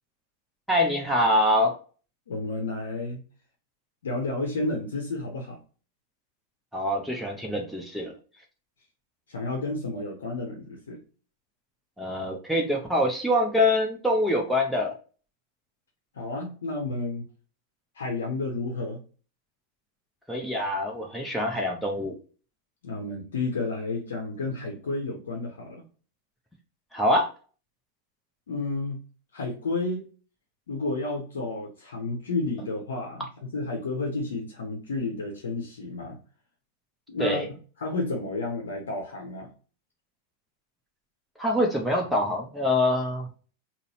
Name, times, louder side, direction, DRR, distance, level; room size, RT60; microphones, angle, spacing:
voice 1, 0.7-1.8 6.7-8.1 12.0-14.9 20.3-22.1 26.9-27.3 37.2-37.5 41.4-43.3, left 1 dB, ahead, -1 dB, 0.7 m, -25 dB
voice 2, 2.3-3.2 4.0-5.6 9.3-11.0 16.1-17.3 18.0-19.0 22.8-25.8 28.5-29.0 29.3-30.0 30.7-36.2 37.1-37.4 37.8-39.5, left 2 dB, 65° left, 0 dB, 0.7 m, -31 dB
3.7 x 2.1 x 2.8 m, 0.37 s
figure-of-eight pair, 90°, 0 cm